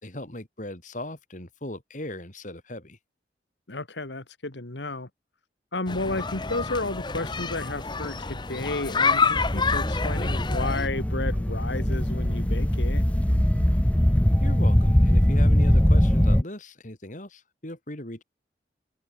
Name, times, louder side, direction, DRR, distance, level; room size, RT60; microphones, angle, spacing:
voice 1, 0.0-3.0 14.4-18.2, left 1 dB, 45° left, 4.3 m, -38 dB
voice 2, 3.7-5.1 5.7-13.0, left 2 dB, 85° left, 2.2 m, -32 dB
sound 1, 5.9-10.9, left 4 dB, 25° left, 1.0 m, -28 dB
sound 2, 9.3-16.4, equal, 10° left, 0.5 m, -21 dB
open air
head